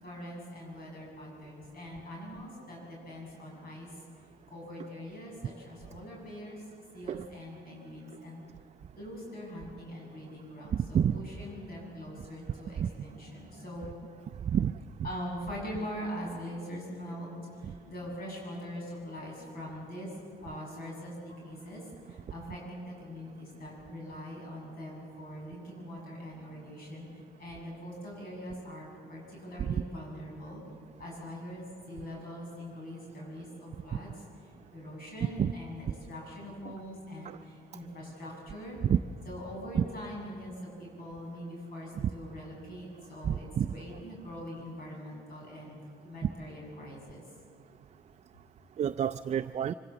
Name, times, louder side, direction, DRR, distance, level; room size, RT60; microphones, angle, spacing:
voice 1, 0.0-3.9 4.5-6.6 6.9-8.4 9.0-13.9 15.0-20.1 20.4-30.6 31.0-38.8 39.2-45.8 46.0-47.2, equal, 60° left, -2 dB, 7.8 m, -43 dB
voice 2, 10.7-11.2 12.8-12.9 14.4-14.7 29.6-29.7 35.4-35.5 37.3-37.4 38.8-39.0 39.7-39.8 43.3-43.7 48.8-49.7, right 9 dB, 40° right, 10 dB, 0.4 m, -28 dB
24.5 x 17.0 x 7.1 m, 2.2 s
cardioid pair, 100°, 17 cm